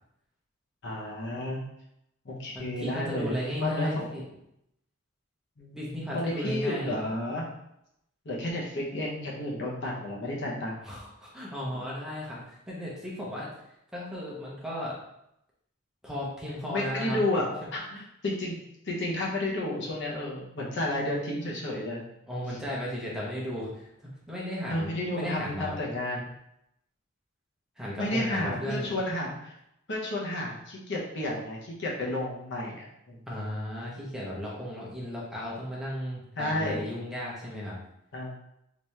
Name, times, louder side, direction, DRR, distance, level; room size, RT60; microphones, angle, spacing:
voice 1, 0.8-1.6 2.2-3.3 3.6-4.1 5.6-7.5 8.2-10.8 11.7-11.8 16.7-18.6 18.8-22.0 22.5-22.6 24.7-26.3 28.0-29.5 29.9-33.2 36.4-36.9 38.1-38.3, left 1 dB, 60° left, -3 dB, 0.9 m, -31 dB
voice 2, 2.5-4.2 5.7-7.0 10.8-13.5 13.9-15.0 16.0-17.2 22.3-25.8 27.8-28.9 33.3-37.8, equal, 5° right, -6 dB, 0.9 m, -35 dB
3.4 x 3.0 x 3.2 m, 0.79 s
head